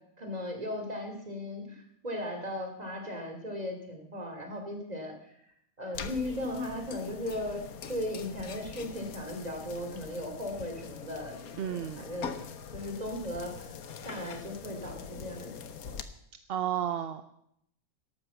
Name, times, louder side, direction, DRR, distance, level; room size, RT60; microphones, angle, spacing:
voice 1, 0.2-5.1 5.8-7.6 7.9-12.4 12.7-13.5 14.0-15.5 15.9-16.0, left 1 dB, 25° right, 3 dB, 3.0 m, -37 dB
sound 1, 5.9-16.0, left 7 dB, 85° left, 1.5 m, -43 dB
voice 2, 11.6-12.0 16.5-17.2, right 10 dB, 55° right, 10 dB, 0.8 m, -32 dB
13.0 x 12.0 x 7.1 m, 0.73 s
omnidirectional pair, 1.5 m